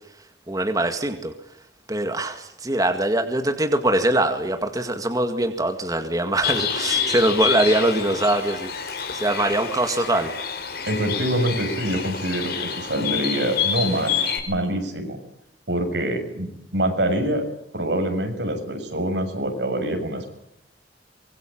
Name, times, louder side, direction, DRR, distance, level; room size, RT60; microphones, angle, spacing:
voice 1, 0.5-1.3 1.9-10.3, right 1 dB, 20° right, 6 dB, 2.1 m, -23 dB
Bird, 6.4-14.4, left 7 dB, 55° left, 5.4 m, -28 dB
voice 2, 10.9-14.2 14.5-15.2 15.7-17.4 17.7-20.3, right 1 dB, 75° right, 5 dB, 6.8 m, -25 dB
24.5 x 23.0 x 8.8 m, 0.82 s
head